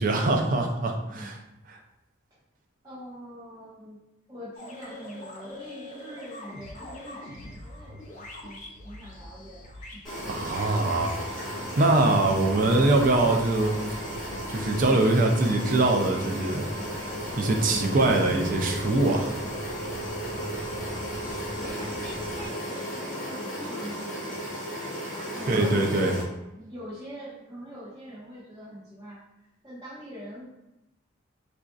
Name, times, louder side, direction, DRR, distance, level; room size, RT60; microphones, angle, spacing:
voice 1, 0.0-1.4 10.3-11.1 11.8-13.8 14.5-16.6 17.4-19.3 25.5-26.1, right 2 dB, 45° right, 2 dB, 0.4 m, -23 dB
voice 2, 2.8-4.0 4.3-9.9 19.4-19.5 21.6-24.3 24.9-26.2 26.6-29.2 29.6-30.4, equal, 20° right, -12 dB, 0.9 m, -43 dB
sound 1, 4.6-14.9, left 1 dB, 40° left, 0.6 m, -44 dB
sound 2, 10.0-26.2, equal, 5° left, 1.3 m, -35 dB
sound 3, 10.4-22.5, equal, 85° left, 0.7 m, -42 dB
4.2 x 2.5 x 2.3 m, 0.92 s
head